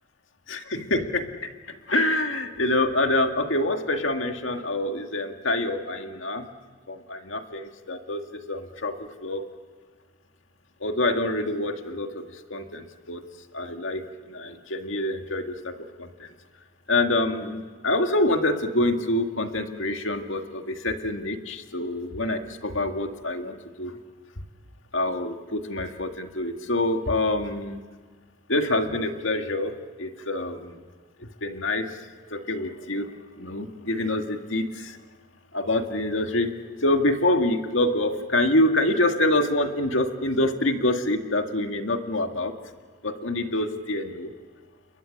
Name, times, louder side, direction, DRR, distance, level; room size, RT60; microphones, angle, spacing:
voice 1, 0.5-1.2 1.9-6.4 6.9-9.0 9.2-9.4 10.8-13.2 13.5-14.0 14.3-16.3 16.9-23.9 24.9-27.8 28.5-30.8 31.2-31.9 32.3-33.1 33.4-35.0 35.5-36.5 36.8-42.5 43.0-44.3, left 1 dB, 80° left, 5 dB, 1.9 m, -26 dB
28.5 x 22.5 x 6.5 m, 1.5 s
head